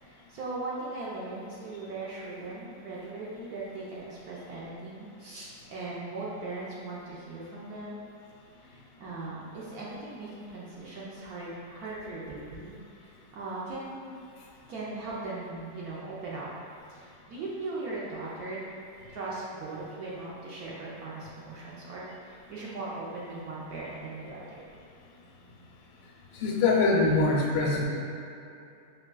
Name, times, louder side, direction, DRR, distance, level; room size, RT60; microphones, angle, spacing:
voice 1, 0.0-8.0 8.6-14.2 14.7-16.5 16.9-18.6 19.1-24.6, right 2 dB, 65° right, -7 dB, 1.0 m, -39 dB
voice 2, 26.3-27.8, left 3 dB, 85° left, -1 dB, 1.3 m, -23 dB
4.8 x 3.6 x 2.2 m, 2.7 s
omnidirectional pair, 2.0 m